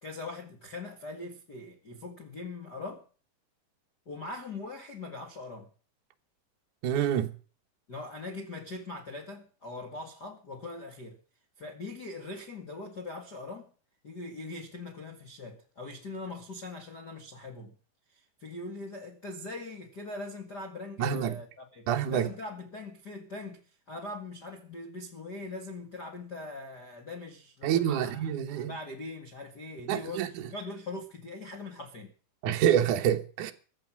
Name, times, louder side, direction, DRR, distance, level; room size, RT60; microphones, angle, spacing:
voice 1, 0.0-3.0 4.0-5.7 7.9-11.2 11.6-13.7 14.0-17.8 18.1-32.1, left 2 dB, 70° left, 0.9 m, -41 dB
voice 2, 6.8-7.3 21.0-21.4 21.9-22.3 27.6-28.7 29.9-30.3 32.4-33.5, right 10 dB, 70° right, 1.9 m, -27 dB
15.5 x 11.0 x 6.1 m
omnidirectional pair, 5.4 m